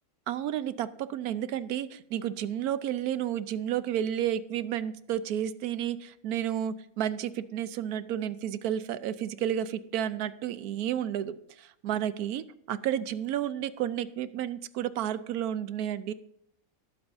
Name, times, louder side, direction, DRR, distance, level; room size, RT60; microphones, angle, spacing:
voice 1, 0.3-16.1, right 10 dB, 90° right, 14 dB, 1.2 m, -31 dB
19.0 x 7.9 x 2.6 m, 0.76 s
omnidirectional pair, 1.6 m